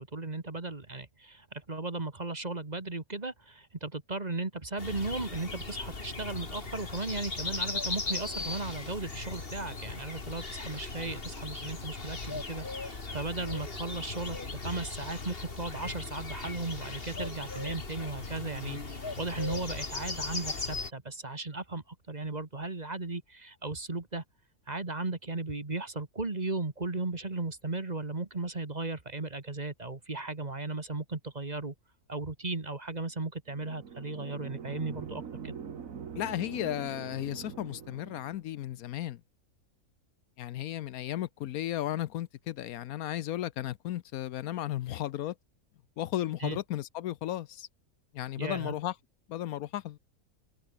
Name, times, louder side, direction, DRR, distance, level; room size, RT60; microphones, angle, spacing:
voice 1, 0.0-24.2 24.7-31.7 32.1-35.6 46.4-46.6 48.4-48.7, right 3 dB, 30° right, 1.9 m, -36 dB
sound 1, 4.8-20.9, left 3 dB, 40° left, 2.5 m, -38 dB
sound 2, 33.5-38.4, right 7 dB, 65° right, 1.8 m, -43 dB
voice 2, 36.2-39.2 40.4-45.3 46.0-47.7 48.1-48.9 49.3-50.0, left 13 dB, 75° left, 1.1 m, -34 dB
omnidirectional pair, 1.6 m